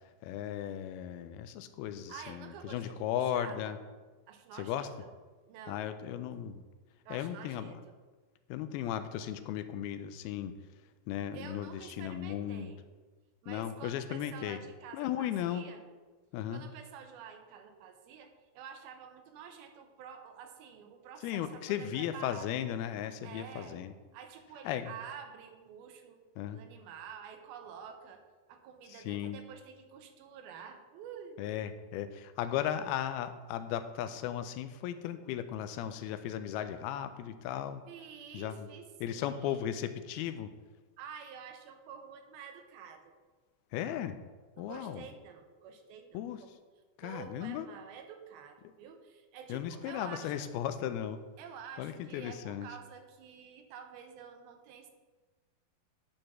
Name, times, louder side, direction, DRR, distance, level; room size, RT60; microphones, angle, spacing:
voice 1, 0.2-3.8 4.5-4.9 5.7-6.6 7.1-7.8 8.5-10.5 11.1-12.7 13.5-14.6 14.9-15.6 16.3-16.6 21.2-23.9 24.6-24.9 26.4-26.6 28.9-29.4 31.4-37.8 38.3-38.7 39.0-40.5 43.7-44.2 44.6-45.1 46.1-46.4 47.0-47.7 49.5-51.2 51.8-52.7, left 10 dB, 85° left, 11 dB, 2.4 m, -36 dB
voice 2, 2.1-3.8 4.3-5.1 5.5-5.9 7.1-7.9 11.3-12.8 13.4-15.8 16.5-22.5 23.2-23.8 24.1-26.2 26.5-28.2 28.5-31.4 37.9-39.7 41.0-43.1 44.6-46.5 47.0-50.5 51.4-54.9, right 7 dB, 80° right, 6 dB, 2.7 m, -49 dB
10.5 x 5.1 x 6.0 m, 1.3 s
omnidirectional pair, 4.5 m